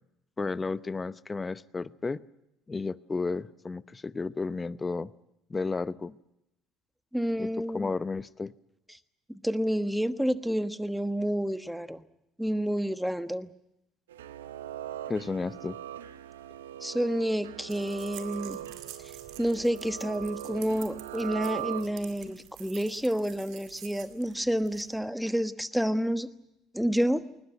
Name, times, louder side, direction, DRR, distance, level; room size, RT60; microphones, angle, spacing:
voice 1, 0.4-2.2 2.7-5.1 5.5-6.2 7.4-8.5 15.1-15.8, left 4 dB, 25° left, 17 dB, 0.8 m, -33 dB
voice 2, 7.1-7.9 9.3-12.0 12.4-13.5 16.8-18.6 19.4-26.3 26.7-27.2, equal, ahead, 12 dB, 1.3 m, -29 dB
sound 1, 14.1-22.3, right 12 dB, 80° right, 0.9 m, -40 dB
sound 2, 17.7-24.9, right 12 dB, 65° right, 2.2 m, -49 dB
21.0 x 20.0 x 9.3 m, 0.85 s
hypercardioid pair, 60°, 0 cm